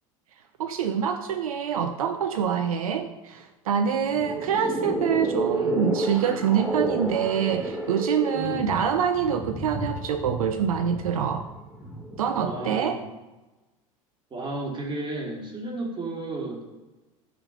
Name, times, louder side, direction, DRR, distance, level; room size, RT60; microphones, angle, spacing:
voice 1, 0.6-11.5 12.2-13.0, right 8 dB, 80° right, 9 dB, 0.4 m, -26 dB
sound 1, 4.0-12.7, right 1 dB, 10° right, 1.7 m, -31 dB
voice 2, 5.5-5.8 8.3-8.7 12.4-13.1 14.3-16.7, right 2 dB, 25° right, -1 dB, 2.1 m, -33 dB
6.7 x 4.3 x 5.5 m, 1.1 s
hypercardioid pair, 75°, 18 cm